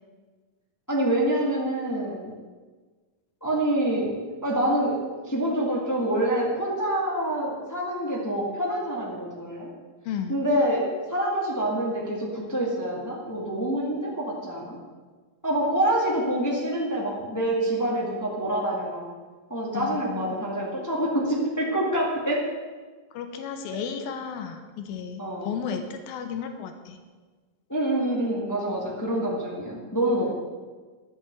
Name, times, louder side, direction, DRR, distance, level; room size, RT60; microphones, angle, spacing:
voice 1, 0.9-2.3 3.4-4.9 5.3-9.7 10.3-14.8 15.4-19.1 19.5-22.4 25.2-25.5 27.7-30.3, right 1 dB, 20° left, -3 dB, 0.4 m, -26 dB
voice 2, 10.0-10.4 19.7-20.5 23.1-27.0, left 7 dB, 85° left, 6 dB, 2.8 m, -34 dB
11.0 x 7.2 x 7.9 m, 1.4 s
omnidirectional pair, 4.1 m